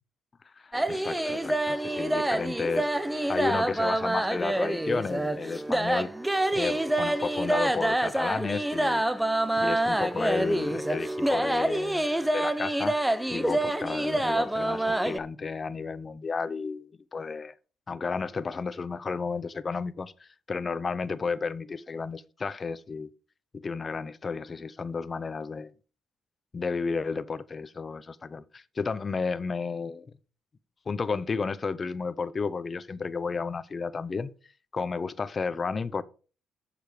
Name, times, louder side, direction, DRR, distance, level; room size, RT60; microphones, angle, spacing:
voice 1, 0.6-2.9 3.3-6.1 6.5-9.1 9.6-13.0 13.3-17.5 17.9-23.1 23.5-25.7 26.5-30.1 30.9-34.3 34.7-36.0, left 4 dB, 35° left, 0.7 m, -32 dB
sound 1, 0.7-15.2, right 1 dB, 5° right, 0.6 m, -27 dB
7.8 x 6.8 x 5.0 m
cardioid pair, 90°, 0 cm